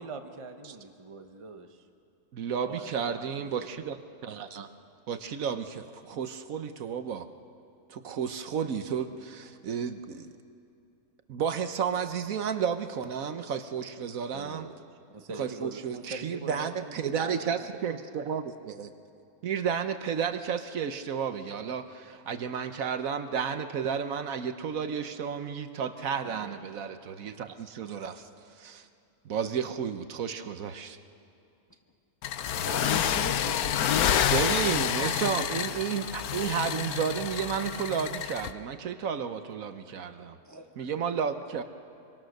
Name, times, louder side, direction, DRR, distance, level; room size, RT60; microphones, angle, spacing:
voice 1, 0.0-1.9 2.7-3.7 14.3-14.8 15.1-17.9 26.2-26.6, right 3 dB, 25° right, 5 dB, 0.8 m, -43 dB
voice 2, 2.3-4.7 5.1-7.3 7.9-10.3 11.3-14.7 15.4-18.9 19.4-28.3 28.6-28.9 29.2-31.0 34.3-40.4 40.8-41.6, right 7 dB, 70° right, 9 dB, 1.3 m, -32 dB
sound 1, 32.2-38.5, left 9 dB, 80° left, 1.2 m, -28 dB
voice 3, 32.6-34.2 40.4-40.7, left 1 dB, 15° left, 3 dB, 1.1 m, -39 dB
24.5 x 24.0 x 6.5 m, 2.5 s
omnidirectional pair, 1.6 m